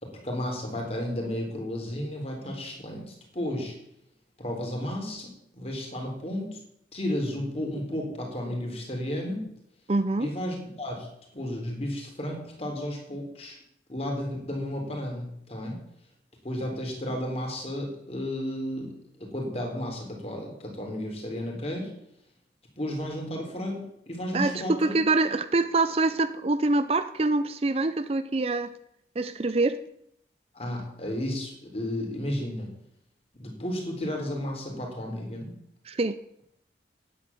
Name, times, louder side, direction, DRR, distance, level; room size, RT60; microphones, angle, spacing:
voice 1, 0.0-3.8 4.4-6.6 6.9-9.5 10.2-11.1 11.3-13.6 13.9-15.8 16.4-21.9 22.8-25.0 30.5-32.7 33.4-35.5, left 1 dB, 35° left, 0 dB, 3.7 m, -33 dB
voice 2, 9.9-10.3 24.3-28.7 29.2-29.8 35.9-36.2, right 3 dB, 35° right, 12 dB, 0.5 m, -25 dB
9.8 x 8.5 x 8.4 m, 0.75 s
head